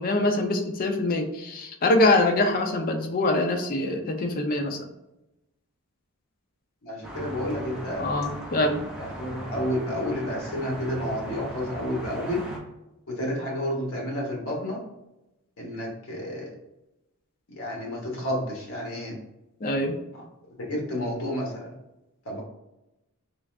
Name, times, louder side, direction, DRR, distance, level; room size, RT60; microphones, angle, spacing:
voice 1, 0.0-4.9 8.0-8.8 19.6-20.0, left 2 dB, 40° left, 4 dB, 0.5 m, -24 dB
voice 2, 6.8-8.1 9.0-12.4 13.1-14.8 15.6-16.5 17.5-19.2 20.6-21.7 22.2-22.4, left 1 dB, 70° left, -1 dB, 1.2 m, -30 dB
sound 1, 7.0-12.6, right 1 dB, 5° right, 0.8 m, -38 dB
3.8 x 2.4 x 3.2 m, 0.94 s
head